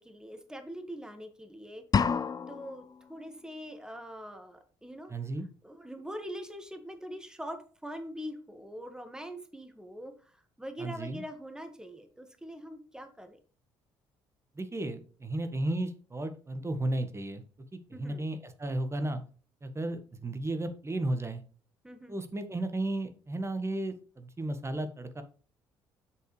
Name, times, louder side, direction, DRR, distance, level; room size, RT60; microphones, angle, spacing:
voice 1, 0.0-1.8 2.5-5.1 5.6-10.1 10.6-13.4 17.9-18.2 21.8-22.2, equal, 5° right, 7 dB, 1.8 m, -43 dB
sound 1, 1.9-2.9, left 6 dB, 30° left, 0.6 m, -28 dB
voice 2, 5.1-5.5 10.8-11.2 14.5-17.4 17.9-19.2 19.6-21.4 22.1-25.2, right 1 dB, 20° right, 9 dB, 1.6 m, -34 dB
7.8 x 6.6 x 3.3 m, 0.39 s
hypercardioid pair, 50°, 12 cm